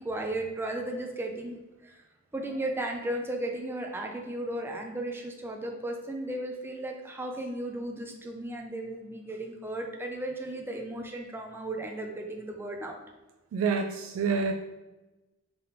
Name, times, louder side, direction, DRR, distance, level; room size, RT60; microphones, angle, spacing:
voice 1, 0.0-1.9 2.3-13.0, right 1 dB, 10° right, 2 dB, 0.4 m, -35 dB
voice 2, 13.5-14.5, right 5 dB, 90° right, 4 dB, 0.3 m, -27 dB
3.8 x 3.6 x 2.8 m, 1.1 s
head